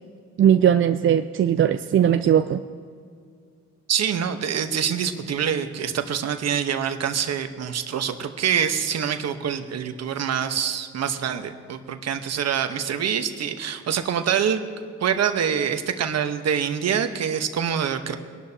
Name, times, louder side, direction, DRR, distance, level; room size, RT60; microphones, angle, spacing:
voice 1, 0.4-2.6, right 9 dB, 45° right, 9 dB, 0.4 m, -19 dB
voice 2, 3.9-14.6 15.0-18.2, right 8 dB, 60° right, 7 dB, 1.1 m, -25 dB
23.5 x 11.5 x 2.9 m, 2.2 s
cardioid pair, 90°, 30 cm